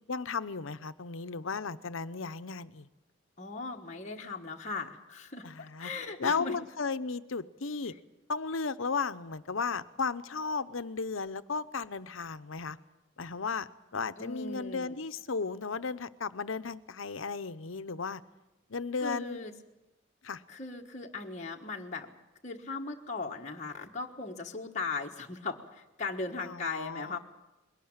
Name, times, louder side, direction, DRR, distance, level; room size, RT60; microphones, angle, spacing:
voice 1, 0.1-2.9 5.4-5.9 6.2-7.9 8.3-12.8 13.2-18.2 18.7-19.4 20.2-20.4 26.4-27.2, left 4 dB, 90° left, 13 dB, 0.8 m, -35 dB
voice 2, 3.4-6.6 7.9-8.0 14.2-15.0 19.0-19.5 20.5-22.1 22.4-27.2, left 3 dB, 35° left, 0 dB, 1.4 m, -38 dB
21.5 x 18.0 x 8.9 m, 0.99 s
head